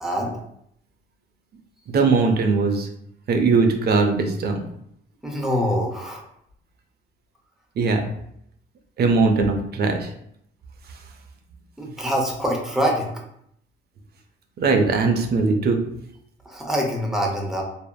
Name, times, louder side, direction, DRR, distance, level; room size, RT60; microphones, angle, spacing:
voice 1, 0.0-0.4 5.2-6.2 11.8-13.1 16.4-17.6, equal, ahead, 0 dB, 0.6 m, -24 dB
voice 2, 1.9-2.9 3.3-4.6 7.8-8.0 9.0-10.1 14.6-15.9, right 4 dB, 55° right, 5 dB, 0.5 m, -20 dB
3.5 x 2.0 x 2.2 m, 0.73 s
cardioid pair, 90°, 20 cm